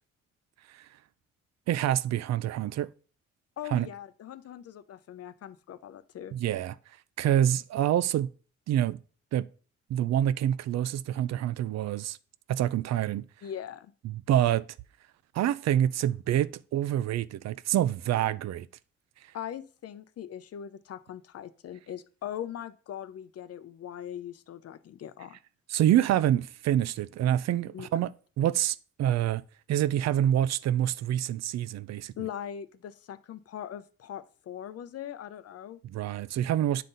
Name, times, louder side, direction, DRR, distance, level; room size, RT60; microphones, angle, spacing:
voice 1, 1.7-2.9 3.7-3.9 6.3-6.7 7.2-8.3 8.7-9.0 9.3-9.5 9.9-12.2 12.5-13.2 14.0-14.6 15.3-18.7 25.7-28.1 28.4-29.4 29.7-32.1 35.8-36.8, right 11 dB, 60° right, 0.5 m, -26 dB
voice 2, 3.6-6.3 13.4-13.9 19.3-25.4 27.7-27.9 32.2-35.8, left 10 dB, 55° left, 0.6 m, -40 dB
9.3 x 3.9 x 3.9 m
cardioid pair, 90°, 30 cm